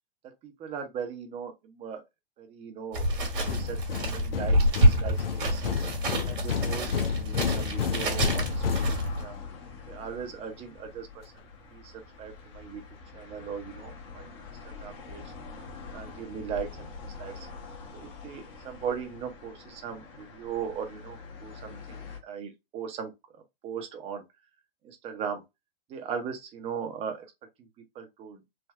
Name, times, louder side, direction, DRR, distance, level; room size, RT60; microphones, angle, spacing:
voice 1, 0.4-2.0 2.4-4.6 4.8-5.8 6.3-8.8 9.2-9.4 9.9-11.2 11.7-12.8 13.1-14.3 14.6-15.2 15.9-17.5 17.9-23.1 23.6-24.2 24.8-25.4 25.9-27.3 27.9-28.4, right 7 dB, 20° right, 0.7 m, -38 dB
sound 1, 2.9-9.2, equal, 60° right, 1.4 m, -27 dB
sound 2, 3.5-9.5, left 7 dB, 85° left, 0.5 m, -31 dB
sound 3, 7.4-22.2, left 4 dB, 35° left, 0.9 m, -45 dB
3.5 x 2.1 x 2.3 m
figure-of-eight pair, 110°, 29 cm